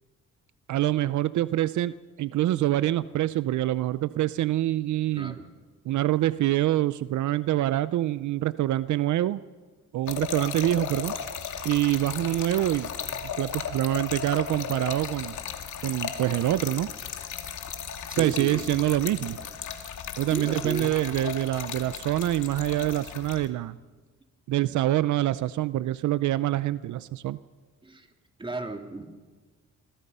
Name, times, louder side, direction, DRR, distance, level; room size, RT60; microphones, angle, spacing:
voice 1, 0.7-5.4 5.8-9.4 9.9-11.1 11.6-12.9 13.4-15.4 15.8-16.9 18.1-19.4 20.2-23.8 24.5-27.4, right 14 dB, 75° right, 15 dB, 0.7 m, -25 dB
voice 2, 5.1-5.5 18.1-18.8 20.3-20.9 27.8-28.1 28.4-29.0, right 2 dB, 15° right, 4 dB, 2.9 m, -34 dB
Trickle dribble / Fill (with liquid), 10.1-23.5, left 8 dB, 75° left, 2.6 m, -36 dB
29.0 x 23.5 x 5.6 m, 1.4 s
cardioid pair, 90°, 30 cm